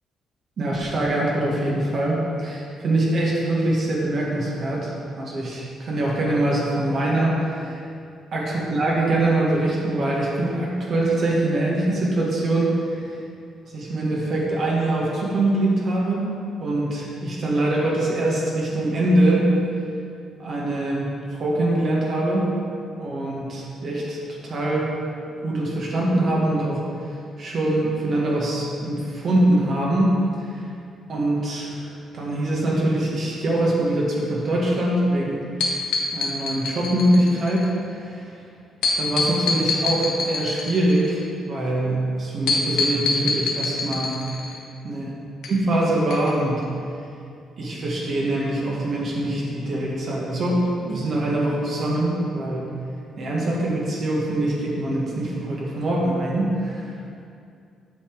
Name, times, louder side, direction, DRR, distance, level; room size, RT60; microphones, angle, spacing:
voice 1, 0.6-4.9 5.2-7.8 8.3-13.1 13.7-16.3 16.6-19.5 20.4-22.5 23.0-24.2 24.4-24.9 25.4-27.1 27.4-30.7 31.1-35.5 36.1-37.7 37.9-38.3 38.9-41.2 41.5-44.2 44.8-45.1 45.5-46.7 47.6-52.7 53.2-56.9, right 1 dB, 55° right, -4 dB, 1.8 m, -23 dB
sound 1, 35.6-37.7 38.8-41.3 42.5-44.6 45.4-45.5 46.1-46.3 46.6-46.7, left 3 dB, 80° left, 1.2 m, -24 dB
8.3 x 5.8 x 4.9 m, 2.4 s
cardioid pair, 90°, 0 cm